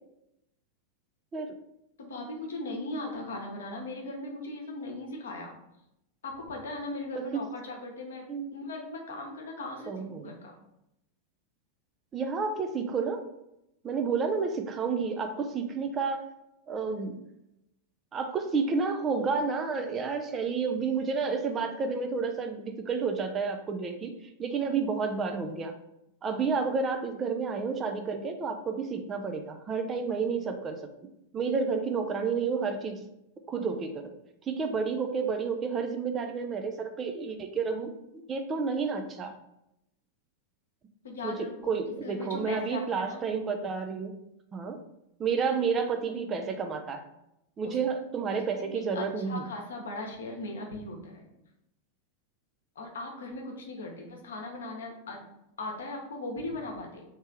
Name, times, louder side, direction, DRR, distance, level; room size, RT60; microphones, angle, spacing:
voice 1, 2.0-5.6 6.2-8.2 8.5-10.5 41.0-43.2 47.6-47.8 48.3-51.3 52.8-55.2 55.6-57.0, left 2 dB, 65° left, 1 dB, 0.9 m, -38 dB
voice 2, 9.9-10.3 12.1-13.2 13.8-16.2 16.7-17.2 18.1-24.1 24.4-25.7 26.2-30.8 31.3-33.1 33.5-34.1 34.5-37.9 38.3-39.3 41.2-41.3 41.7-44.1 44.5-44.8 45.2-47.1 47.6-49.4, right 5 dB, 25° right, 5 dB, 0.4 m, -30 dB
3.3 x 2.9 x 4.6 m, 0.85 s
figure-of-eight pair, 90°, 0 cm